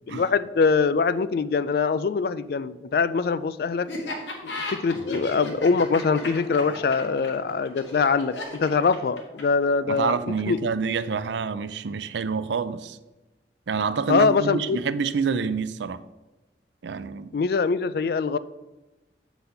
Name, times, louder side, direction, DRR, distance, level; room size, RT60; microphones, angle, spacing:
voice 1, 0.1-3.9 4.4-10.2 10.5-10.6 14.1-14.8 17.3-18.4, left 5 dB, 55° left, 0.3 m, -23 dB
Laughter, 3.9-9.6, left 2 dB, 80° left, 1.6 m, -35 dB
sound 1, 4.8-11.4, equal, 35° left, 1.5 m, -48 dB
voice 2, 9.9-13.0 13.7-16.0 16.8-17.3, right 5 dB, 75° right, 0.4 m, -27 dB
8.1 x 4.0 x 5.6 m
head